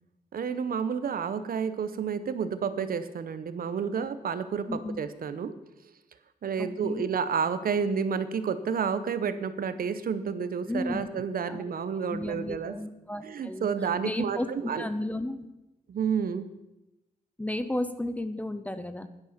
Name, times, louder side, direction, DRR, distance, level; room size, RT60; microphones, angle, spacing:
voice 1, 0.3-5.5 6.4-12.7 13.2-14.8 15.9-16.5, right 6 dB, 65° right, 12 dB, 0.8 m, -30 dB
voice 2, 4.7-5.0 6.6-7.1 10.7-11.2 11.5-11.7 12.1-13.7 14.0-15.5 17.4-19.1, left 1 dB, 10° left, 11 dB, 0.6 m, -33 dB
11.0 x 10.5 x 5.7 m, 0.94 s
wide cardioid pair, 165°, 16 cm